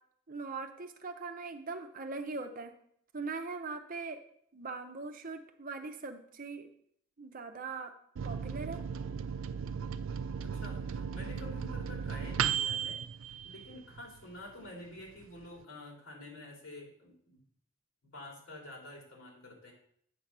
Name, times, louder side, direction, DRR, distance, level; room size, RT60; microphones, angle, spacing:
voice 1, 0.3-2.7 3.1-4.2 4.5-6.7 7.2-7.9 8.2-8.8, right 4 dB, 45° right, 6 dB, 0.7 m, -41 dB
Microwave oven, 8.2-14.2 14.6-14.7 15.0-15.6, right 7 dB, 70° right, 0.4 m, -36 dB
voice 2, 10.4-17.4 18.0-19.7, left 1 dB, 85° left, -1 dB, 2.7 m, -49 dB
8.1 x 4.1 x 6.1 m, 0.66 s
head